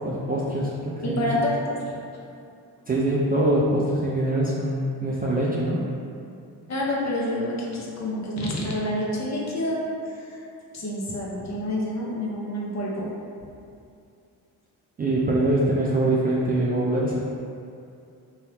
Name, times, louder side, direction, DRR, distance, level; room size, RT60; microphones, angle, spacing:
voice 1, 0.0-1.3 2.9-5.8 15.0-17.2, right 1 dB, 20° right, -6 dB, 0.3 m, -23 dB
voice 2, 1.0-1.8 6.7-10.4 10.7-13.1, left 1 dB, 35° left, -4 dB, 0.8 m, -28 dB
2.7 x 2.3 x 3.3 m, 2.5 s
hypercardioid pair, 45°, 48 cm